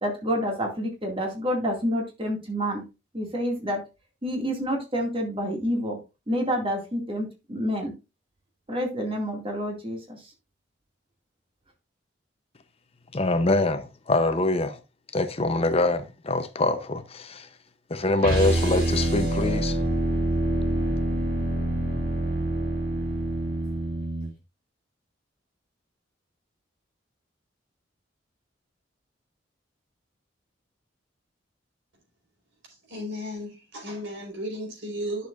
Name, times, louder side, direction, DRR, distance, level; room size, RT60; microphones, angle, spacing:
voice 1, 0.0-2.9 3.1-3.8 4.2-6.0 6.3-7.9 8.7-10.3, equal, 30° right, 2.3 m, -28 dB
voice 2, 13.1-14.8 15.1-17.5 17.9-19.8, left 2 dB, 35° left, 0.8 m, -24 dB
sound 1, 18.2-24.3, right 1 dB, 55° right, 3.3 m, -26 dB
voice 3, 32.9-35.3, equal, 75° right, 4.6 m, -34 dB
10.5 x 6.8 x 2.5 m
head